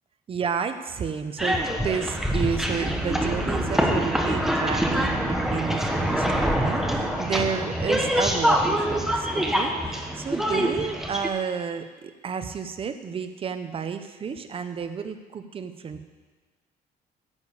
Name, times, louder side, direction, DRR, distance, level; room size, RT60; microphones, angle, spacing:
voice 1, 0.3-16.0, right 6 dB, 30° right, 8 dB, 0.8 m, -31 dB
sound 1, 1.4-11.3, equal, ahead, 1.0 m, -25 dB
11.0 x 6.7 x 8.3 m, 1.4 s
cardioid pair, 155°, 17 cm